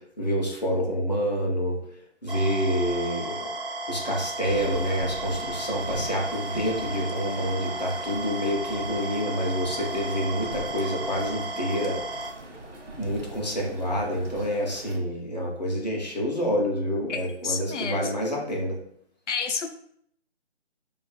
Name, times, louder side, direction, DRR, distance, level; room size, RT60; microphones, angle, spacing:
voice 1, 0.2-1.8 2.2-3.5 3.9-12.0 13.0-18.8, equal, 40° left, -2 dB, 0.6 m, -27 dB
sound 1, 2.3-12.3, right 1 dB, 50° right, 0.5 m, -34 dB
sound 2, 4.4-15.0, right 2 dB, 80° right, 0.9 m, -42 dB
voice 2, 17.1-18.1 19.3-19.7, left 5 dB, 85° left, 6 dB, 0.5 m, -30 dB
2.5 x 2.4 x 4.0 m, 0.67 s
figure-of-eight pair, 180°, 35 cm